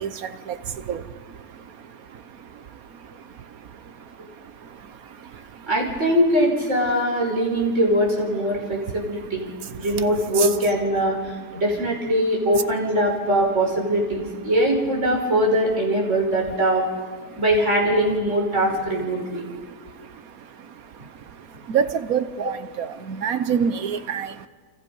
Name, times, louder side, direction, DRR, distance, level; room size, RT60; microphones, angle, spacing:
voice 1, 0.0-5.7 8.7-8.9 9.2-9.3 9.6-9.8 10.4-10.5 17.3-17.4 19.2-24.5, right 7 dB, 65° right, 12 dB, 1.4 m, -30 dB
voice 2, 5.7-16.9 17.4-19.4, equal, 50° right, -2 dB, 5.6 m, -22 dB
29.0 x 26.5 x 5.5 m, 1.5 s
omnidirectional pair, 1.7 m